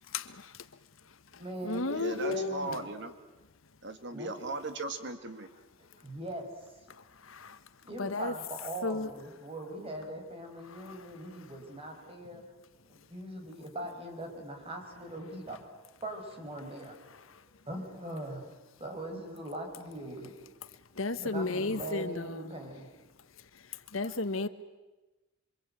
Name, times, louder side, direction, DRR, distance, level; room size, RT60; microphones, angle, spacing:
voice 1, 0.1-0.7 1.0-2.6 6.9-7.6 8.0-8.3 8.8-9.1 10.6-11.1 11.4-11.5 17.2-17.4 20.9-22.6 23.4-24.5, left 3 dB, 85° left, 11 dB, 1.4 m, -35 dB
voice 2, 1.3-2.9 4.1-4.3 5.8-6.5 7.8-12.4 12.9-17.0 17.4-18.5 18.8-20.4 21.2-22.9 24.0-24.1, right 1 dB, 30° right, 3 dB, 5.5 m, -41 dB
voice 3, 1.9-3.1 3.8-5.5, right 2 dB, 60° right, 8 dB, 2.0 m, -37 dB
26.5 x 24.5 x 9.1 m, 1.1 s
head